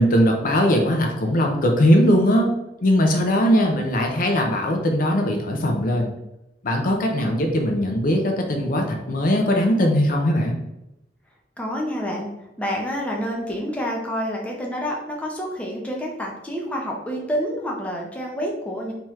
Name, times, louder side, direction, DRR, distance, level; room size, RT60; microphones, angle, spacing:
voice 1, 0.0-2.5 2.8-6.1 6.6-10.6, equal, 50° left, 2 dB, 0.5 m, -20 dB
voice 2, 11.6-12.3 12.6-18.9, equal, 10° left, -2 dB, 0.6 m, -28 dB
3.5 x 2.9 x 3.0 m, 0.90 s
head